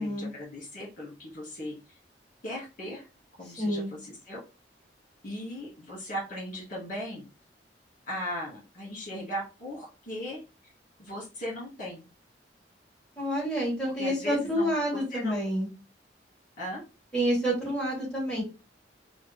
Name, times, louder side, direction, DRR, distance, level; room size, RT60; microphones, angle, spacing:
voice 1, 0.0-2.0 2.4-3.1 3.4-4.4 5.2-7.3 8.1-10.7 11.0-12.1 13.9-15.4 16.6-16.8, equal, 50° left, -4 dB, 1.8 m, -38 dB
voice 2, 3.6-3.9 13.2-15.7 17.1-18.4, equal, 5° left, -8 dB, 1.7 m, -28 dB
3.6 x 2.1 x 3.3 m, 0.30 s
head